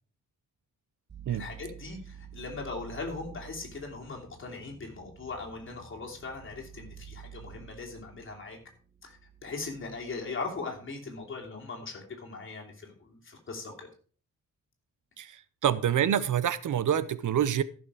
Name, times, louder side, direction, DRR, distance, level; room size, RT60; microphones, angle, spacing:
sound 1, 1.1-10.7, right 8 dB, 35° right, 1.4 m, -50 dB
voice 1, 1.3-8.6 9.0-13.9, left 3 dB, 40° left, 2.8 m, -40 dB
voice 2, 15.2-17.6, right 9 dB, 70° right, 0.7 m, -27 dB
14.5 x 6.3 x 4.8 m
wide cardioid pair, 170°, 32 cm